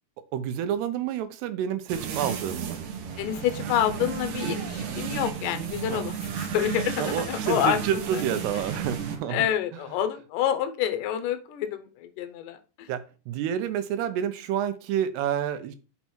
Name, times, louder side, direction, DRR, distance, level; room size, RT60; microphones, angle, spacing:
voice 1, 0.3-2.8 5.9-6.0 7.0-9.5 12.9-15.8, right 9 dB, 85° right, 12 dB, 2.8 m, -29 dB
sound 1, 1.9-9.2, right 7 dB, 65° right, 2.3 m, -33 dB
voice 2, 3.2-8.2 8.7-8.8 9.3-12.9, left 10 dB, 80° left, 8 dB, 2.0 m, -28 dB
6.0 x 5.5 x 4.3 m, 0.33 s
omnidirectional pair, 4.7 m